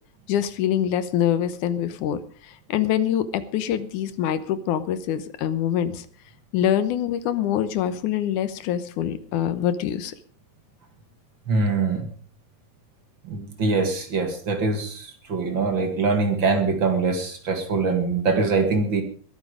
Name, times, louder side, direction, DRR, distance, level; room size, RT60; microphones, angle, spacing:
voice 1, 0.3-6.1 6.5-10.1, left 10 dB, 90° left, 13 dB, 2.6 m, -25 dB
voice 2, 11.5-12.1 13.3-19.0, right 4 dB, 45° right, 6 dB, 2.3 m, -23 dB
21.0 x 9.7 x 5.0 m, 0.43 s
omnidirectional pair, 3.4 m